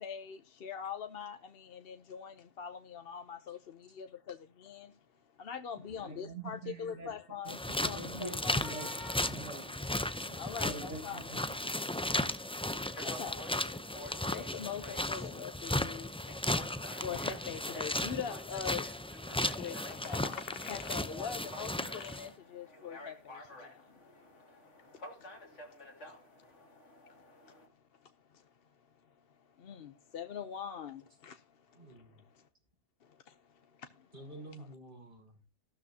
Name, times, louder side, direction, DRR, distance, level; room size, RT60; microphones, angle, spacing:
voice 1, 0.0-3.6 4.0-4.4 4.6-4.9 5.4-8.8 10.4-11.2 13.0-13.4 14.3-16.1 17.0-18.8 19.4-20.2 20.6-23.1 29.7-31.3, left 7 dB, 60° left, 0.9 m, -42 dB
voice 2, 6.0-7.1 7.5-11.6, right 3 dB, 90° right, 2.2 m, -46 dB
sound 1, 7.5-22.3, left 1 dB, 10° left, 0.3 m, -36 dB
sound 2, 8.6-27.7, left 1 dB, 90° left, 2.8 m, -52 dB
voice 3, 31.7-32.2 34.1-35.5, right 1 dB, 50° right, 5.1 m, -50 dB
15.0 x 12.5 x 2.8 m
omnidirectional pair, 1.2 m